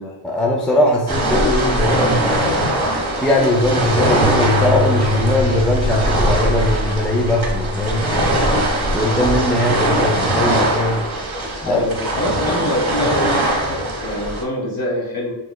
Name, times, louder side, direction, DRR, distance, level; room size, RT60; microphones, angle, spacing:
voice 1, 0.2-2.6 3.1-8.5 8.9-11.1 11.6-11.8, left 1 dB, ahead, -1 dB, 0.3 m, -20 dB
sound 1, 1.1-14.4, right 1 dB, 50° right, 0.9 m, -21 dB
sound 2, 4.2-10.5, left 2 dB, 75° right, 0.6 m, -25 dB
voice 2, 11.6-15.3, left 1 dB, 45° left, -2 dB, 1.1 m, -24 dB
3.0 x 3.0 x 2.2 m, 0.93 s
wide cardioid pair, 90°, 48 cm